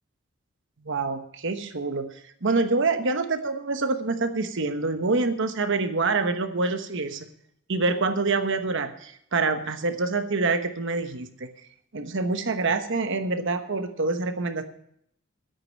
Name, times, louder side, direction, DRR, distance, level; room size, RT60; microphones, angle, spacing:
voice 1, 0.8-2.1 2.4-7.3 7.7-11.5 11.9-14.6, right 3 dB, 65° right, 8 dB, 1.1 m, -26 dB
9.7 x 8.5 x 7.5 m, 0.70 s
head